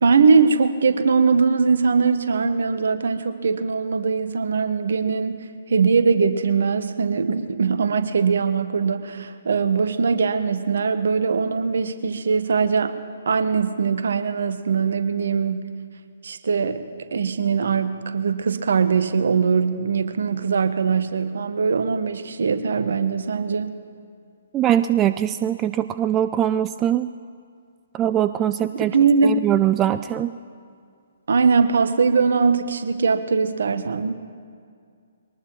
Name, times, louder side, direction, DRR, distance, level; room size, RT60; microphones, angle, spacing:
voice 1, 0.0-12.9 13.3-15.7 16.2-23.8 28.7-29.5 31.3-34.1, right 5 dB, 60° right, 10 dB, 1.0 m, -21 dB
voice 2, 24.5-27.1 27.9-29.0 29.2-30.3, right 11 dB, 20° right, 12 dB, 0.3 m, -22 dB
23.0 x 19.0 x 3.1 m, 2.2 s
figure-of-eight pair, 130°, 0 cm